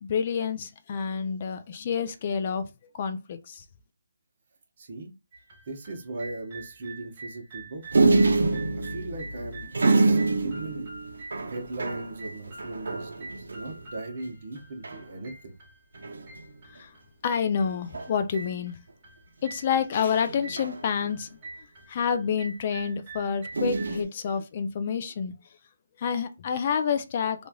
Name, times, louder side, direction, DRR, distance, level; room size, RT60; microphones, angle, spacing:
voice 1, 0.0-2.7 2.9-3.6 16.7-16.9 17.2-18.8 19.4-21.3 21.9-25.3 26.0-27.5, left 7 dB, 30° left, 0.3 m, -28 dB
voice 2, 4.8-5.1 5.7-8.2 8.8-10.9 11.5-15.6, right 2 dB, 35° right, 0.9 m, -38 dB
sound 1, 5.3-24.0, right 3 dB, 20° right, 1.5 m, -46 dB
sound 2, 7.9-13.9 14.3-14.4 14.6-15.1 16.0-16.5 17.9-18.4 20.0-21.3 23.5-24.0, right 3 dB, 75° right, 0.6 m, -26 dB
3.0 x 2.4 x 2.2 m
hypercardioid pair, 170°, 0 cm